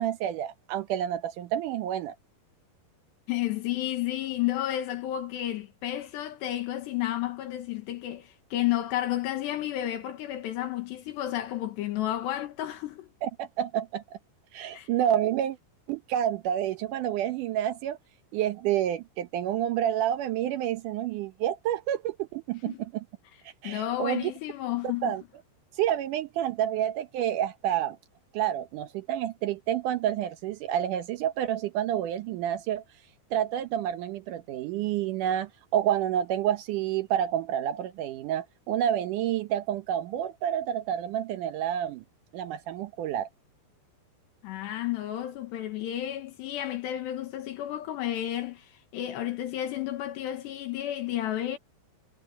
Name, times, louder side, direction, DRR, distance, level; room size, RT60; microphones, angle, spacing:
voice 1, 0.0-2.2 13.2-14.0 14.5-15.6 15.9-18.0 18.3-23.0 23.6-24.3 25.0-25.2 25.8-28.0 28.3-32.8 33.3-42.0 42.3-43.3, right 10 dB, 90° right, 1.8 m, -29 dB
voice 2, 3.3-13.1 14.7-14.9 22.7-22.8 23.6-25.1 44.4-51.6, left 13 dB, 80° left, 3.8 m, -31 dB
omnidirectional pair, 5.0 m